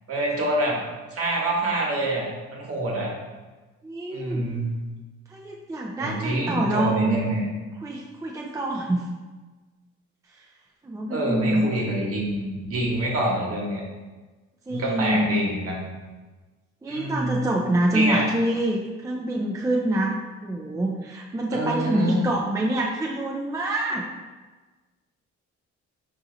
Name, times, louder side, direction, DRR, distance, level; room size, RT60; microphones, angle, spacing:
voice 1, 0.1-0.8 1.1-3.1 4.1-4.7 6.0-7.4 11.1-13.8 14.7-15.9 16.9-17.4 17.9-18.3 21.5-22.2, right 1 dB, 50° right, -2 dB, 1.3 m, -26 dB
voice 2, 3.8-4.4 5.3-7.2 7.8-9.1 10.8-11.7 14.7-15.4 16.8-20.1 20.4-24.1, right 1 dB, 10° right, -1 dB, 0.5 m, -26 dB
4.6 x 2.8 x 3.8 m, 1.3 s
cardioid pair, 90°, 30 cm